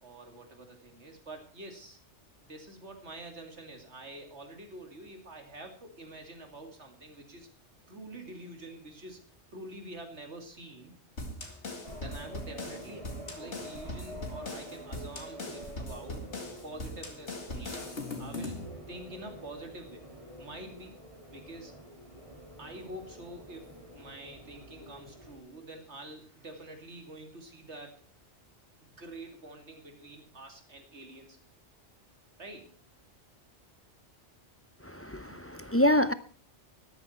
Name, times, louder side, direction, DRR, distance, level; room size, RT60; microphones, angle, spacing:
voice 1, 0.0-2.0 2.4-7.5 7.9-9.2 9.5-10.9 11.9-16.3 16.6-17.8 18.2-18.6 18.9-20.1 20.4-21.0 21.3-21.8 22.6-28.0 28.8-31.4 32.4-32.7 35.3-35.4, right 1 dB, 75° right, 2.9 m, -47 dB
sound 1, 11.2-18.7, left 2 dB, 75° left, 2.5 m, -40 dB
sound 2, 11.8-25.4, right 1 dB, 30° right, 2.9 m, -48 dB
voice 2, 34.8-36.1, left 1 dB, 20° left, 0.4 m, -26 dB
13.0 x 12.5 x 4.5 m
omnidirectional pair, 1.2 m